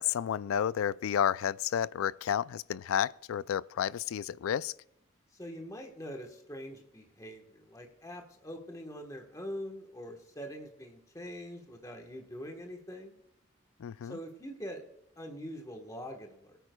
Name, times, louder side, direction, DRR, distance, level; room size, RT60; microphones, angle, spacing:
voice 1, 0.0-4.7 13.8-14.2, left 9 dB, 80° left, 0.3 m, -31 dB
voice 2, 5.3-13.2 14.0-14.8 15.2-16.6, equal, 15° left, 1.2 m, -43 dB
23.0 x 9.1 x 2.2 m
head